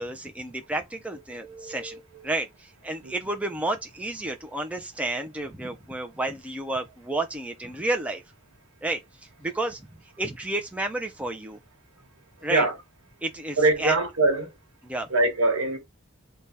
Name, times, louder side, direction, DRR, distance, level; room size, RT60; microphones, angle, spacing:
voice 1, 0.0-8.2 8.8-9.0 9.4-9.8 10.2-11.6 12.4-12.6 13.2-14.0 14.8-15.1, right 2 dB, 5° right, 0.4 m, -31 dB
voice 2, 1.4-2.0 3.0-3.1 12.4-12.8 13.6-14.5 15.1-15.8, right 2 dB, 75° right, 1.1 m, -23 dB
3.3 x 2.2 x 4.0 m
head